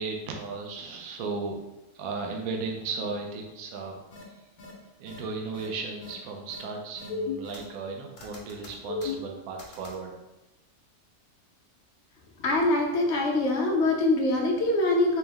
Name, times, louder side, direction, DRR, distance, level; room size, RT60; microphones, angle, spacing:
voice 1, 0.0-1.6 1.9-4.0 5.0-10.1, right 4 dB, 70° right, 2 dB, 1.0 m, -35 dB
sound 1, 4.1-4.2 4.6-4.7 5.1-5.2 5.5-5.7 6.0-6.1 6.5-6.6 7.0-7.9 8.2-10.0, left 4 dB, 75° left, 1.4 m, -36 dB
voice 2, 12.4-15.2, left 2 dB, 60° left, 0 dB, 0.8 m, -24 dB
4.5 x 2.1 x 3.4 m, 0.96 s
omnidirectional pair, 1.7 m